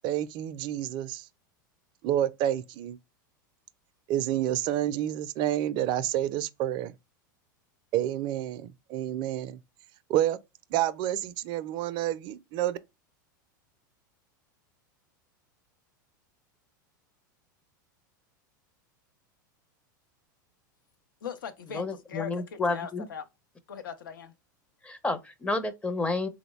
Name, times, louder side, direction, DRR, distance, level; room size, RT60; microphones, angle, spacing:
voice 1, 0.0-1.2 2.0-3.0 4.1-6.9 7.9-9.6 10.1-10.4 10.7-12.8, right 12 dB, 45° right, 0.4 m, -29 dB
voice 2, 21.2-23.2 23.7-24.3, left 7 dB, 85° left, 0.6 m, -40 dB
voice 3, 21.7-23.1 24.8-26.3, left 3 dB, 10° left, 0.5 m, -30 dB
3.6 x 2.1 x 3.0 m
hypercardioid pair, 100°, 11 cm